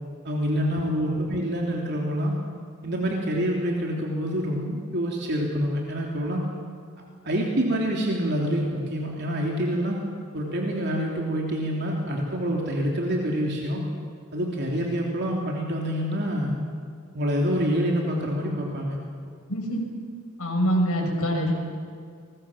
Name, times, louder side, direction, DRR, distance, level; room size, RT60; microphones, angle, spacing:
voice 1, 0.2-2.3 2.8-6.4 7.2-10.0 10.3-13.8 14.3-16.5 17.1-19.0, equal, 50° right, -1 dB, 3.4 m, -26 dB
voice 2, 19.5-19.8 20.4-21.5, equal, 75° left, 1 dB, 6.6 m, -25 dB
30.0 x 22.0 x 7.4 m, 2.2 s
head